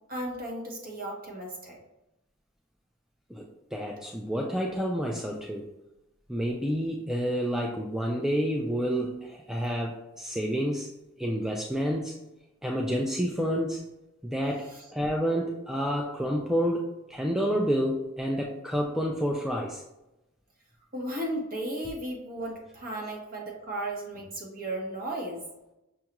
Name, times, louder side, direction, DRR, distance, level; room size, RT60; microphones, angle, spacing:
voice 1, 0.1-1.8 14.7-14.8 20.9-25.4, right 1 dB, 40° right, -1 dB, 1.0 m, -35 dB
voice 2, 3.3-5.7 6.3-10.9 11.2-12.2 12.6-13.8 14.2-19.8, equal, ahead, -1 dB, 0.3 m, -29 dB
6.2 x 2.3 x 2.9 m, 0.93 s
head